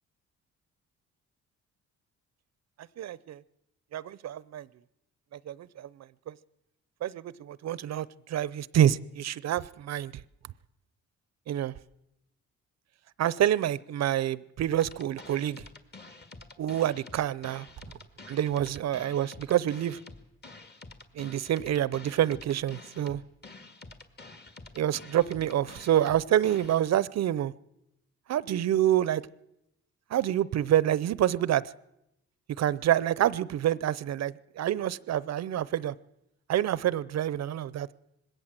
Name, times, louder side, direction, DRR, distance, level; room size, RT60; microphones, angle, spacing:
voice 1, 3.0-3.4 3.9-4.7 5.3-6.3 7.0-10.1 11.5-11.7 13.2-15.6 16.6-17.7 18.3-20.0 21.1-23.2 24.8-27.5 28.3-29.2 30.1-31.6 32.6-35.9 36.5-37.9, right 11 dB, 60° right, 20 dB, 0.7 m, -27 dB
sound 1, 14.8-26.8, left 3 dB, 35° left, 2.0 m, -48 dB
20.5 x 17.0 x 7.5 m, 0.85 s
cardioid pair, 90°, 30 cm